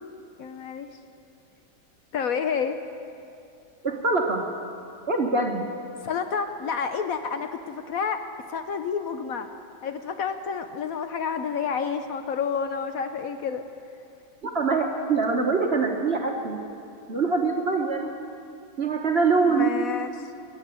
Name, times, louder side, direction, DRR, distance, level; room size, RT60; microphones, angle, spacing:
voice 1, 0.4-0.9 2.1-2.8 6.0-8.2 8.5-9.5 9.8-13.6 19.4-20.1, left 6 dB, 65° left, 8 dB, 0.9 m, -29 dB
voice 2, 3.8-4.5 5.1-5.7 14.4-16.6 17.1-18.1 18.8-19.8, right 4 dB, 40° right, 2 dB, 1.1 m, -24 dB
17.0 x 8.9 x 9.0 m, 2.6 s
omnidirectional pair, 2.0 m